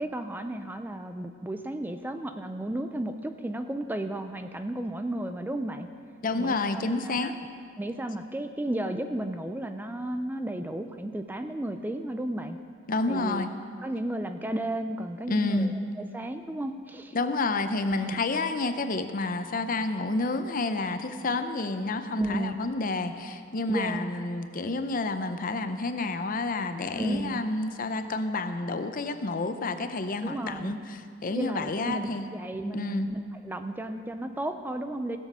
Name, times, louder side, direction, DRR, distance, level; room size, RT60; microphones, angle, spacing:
voice 1, 0.0-5.9 6.4-7.3 7.8-12.6 13.1-13.5 13.8-15.7 16.1-17.2 18.0-18.2 22.2-22.6 23.7-24.1 27.0-27.4 30.2-30.8 31.3-35.2, right 1 dB, 10° right, 7 dB, 0.4 m, -33 dB
voice 2, 6.2-7.3 12.9-13.5 15.3-15.7 17.1-32.3 32.7-33.1, left 3 dB, 45° left, 9 dB, 0.6 m, -29 dB
16.5 x 7.3 x 5.5 m, 2.2 s
head